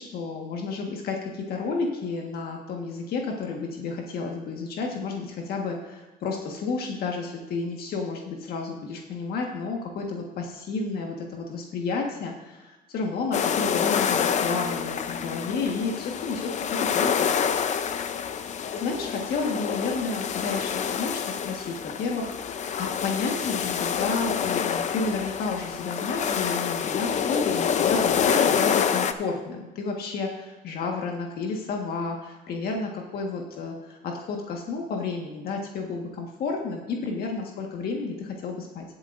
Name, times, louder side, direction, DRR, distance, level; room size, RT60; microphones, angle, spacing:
voice 1, 0.0-16.5 16.9-17.3 18.7-38.8, left 4 dB, 65° left, 1 dB, 1.6 m, -31 dB
sound 1, 13.3-29.1, left 7 dB, 45° left, 0.7 m, -27 dB
19.0 x 7.7 x 2.6 m, 1.1 s
cardioid pair, 110°, 17 cm